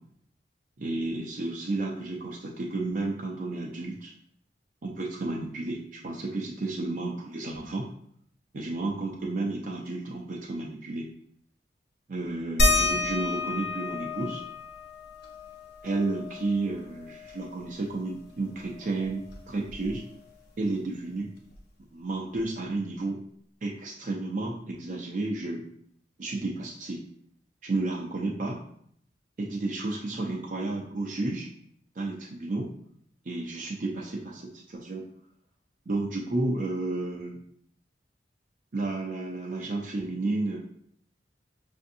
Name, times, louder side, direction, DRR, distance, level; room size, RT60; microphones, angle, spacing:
voice 1, 0.8-4.1 4.8-7.9 8.5-11.1 12.1-14.4 15.8-20.0 20.6-21.3 21.9-23.2 23.6-25.7 26.2-27.0 27.6-28.6 29.4-31.5 31.9-32.7 33.2-35.1 35.9-37.4 38.7-40.6, right 2 dB, 45° right, -2 dB, 0.5 m, -32 dB
sound 1, 12.6-17.7 18.1-18.2 18.5-20.3 21.5-21.6 22.3-22.4, left 2 dB, 60° left, 0.7 m, -30 dB
5.7 x 2.6 x 2.6 m, 0.66 s
head